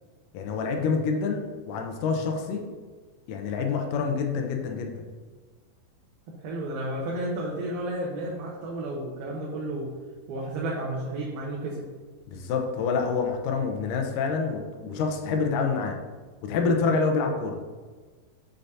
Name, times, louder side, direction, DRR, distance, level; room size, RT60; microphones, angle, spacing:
voice 1, 0.3-2.6 3.3-5.0 12.3-15.9 16.4-17.6, left 4 dB, 75° left, 3 dB, 2.2 m, -27 dB
voice 2, 6.4-9.9 10.3-11.8, right 1 dB, 90° right, -4 dB, 2.8 m, -32 dB
7.0 x 6.8 x 2.7 m, 1.4 s
omnidirectional pair, 4.1 m